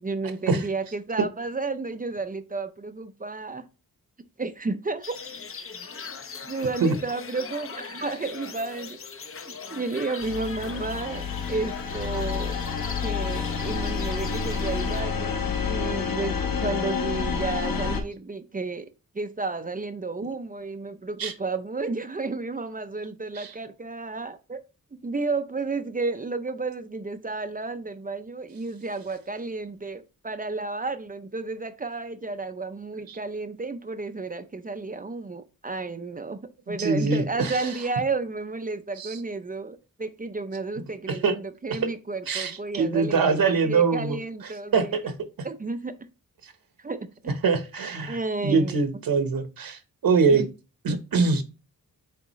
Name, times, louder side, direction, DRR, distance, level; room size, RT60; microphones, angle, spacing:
voice 1, 0.0-3.6 4.4-5.2 6.4-9.0 9.5-12.6 13.0-18.8 19.1-24.6 25.0-36.4 36.7-45.0 45.4-45.9 46.8-47.3 48.1-48.8 50.3-50.5, right 3 dB, 25° right, 0.5 m, -32 dB
sound 1, 5.0-15.0, left 5 dB, 40° left, 0.7 m, -40 dB
sound 2, 10.2-18.0, left 5 dB, 75° left, 1.2 m, -29 dB
voice 2, 36.7-37.7 39.0-39.2 41.1-41.3 41.7-41.8 42.3-45.1 46.4-46.5 47.4-50.5 50.8-51.4, right 4 dB, 80° right, 1.2 m, -24 dB
8.5 x 3.6 x 3.1 m
wide cardioid pair, 150°, 35 cm